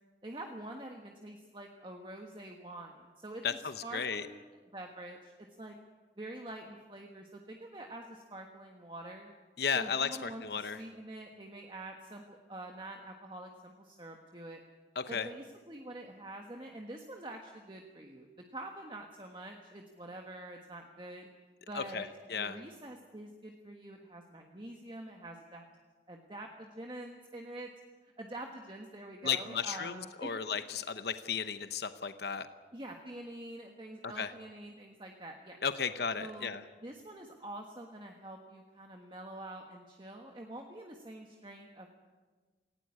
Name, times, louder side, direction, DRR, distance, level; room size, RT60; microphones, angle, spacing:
voice 1, 0.2-5.7 6.2-9.3 9.7-14.6 15.1-21.3 21.7-22.1 22.4-25.6 26.1-27.7 28.0-30.3 32.7-35.6 36.2-36.5 36.8-41.9, right 1 dB, 25° right, 2 dB, 1.4 m, -46 dB
voice 2, 3.4-4.2 9.6-10.8 15.0-15.3 21.7-22.6 29.2-32.5 34.0-34.3 35.6-36.6, left 6 dB, 65° left, 10 dB, 0.8 m, -34 dB
18.5 x 17.0 x 9.7 m, 1.4 s
head